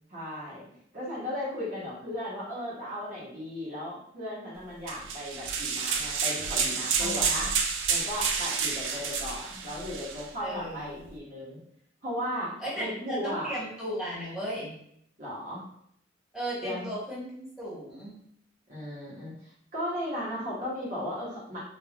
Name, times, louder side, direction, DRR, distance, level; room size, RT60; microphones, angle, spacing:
voice 1, 0.1-0.6 0.9-7.5 7.9-11.6 12.0-13.5 15.2-15.7 16.6-16.9 18.7-21.6, equal, 45° right, -7 dB, 0.8 m, -36 dB
sound 1, 4.9-10.3, right 6 dB, 90° right, 0.4 m, -29 dB
voice 2, 7.0-7.5 10.4-11.0 12.6-14.8 16.3-18.2, equal, 5° right, -9 dB, 1.2 m, -36 dB
3.2 x 2.3 x 2.3 m, 0.70 s
head